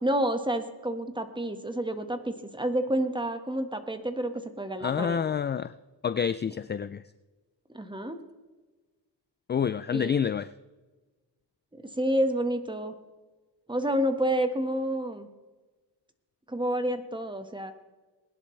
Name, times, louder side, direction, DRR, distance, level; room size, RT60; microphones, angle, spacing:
voice 1, 0.0-5.2 7.7-8.2 9.9-10.3 12.0-12.9 13.7-15.3 16.5-17.7, right 1 dB, 10° right, 7 dB, 1.5 m, -29 dB
voice 2, 4.8-5.7 6.0-7.0 9.5-10.5, left 7 dB, 25° left, 15 dB, 0.3 m, -28 dB
20.5 x 11.0 x 3.3 m, 1.2 s
cardioid pair, 85°, 44 cm